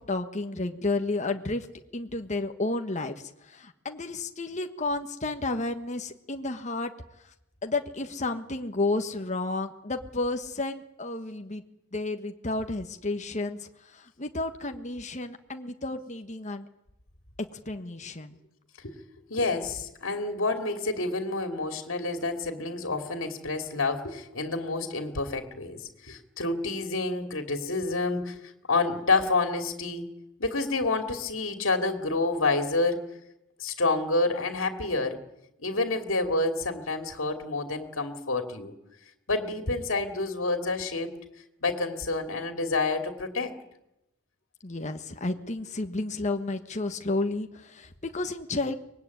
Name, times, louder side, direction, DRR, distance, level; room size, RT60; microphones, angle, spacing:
voice 1, 0.0-1.7 1.9-6.9 7.6-11.6 11.9-16.7 17.5-18.4 44.6-48.7, left 2 dB, 35° left, 6 dB, 1.4 m, -32 dB
voice 2, 19.3-30.1 30.4-33.2 33.6-35.2 35.6-38.7 39.3-41.1 41.6-43.5, left 3 dB, 70° left, 6 dB, 2.7 m, -28 dB
24.5 x 20.5 x 9.6 m, 0.87 s
head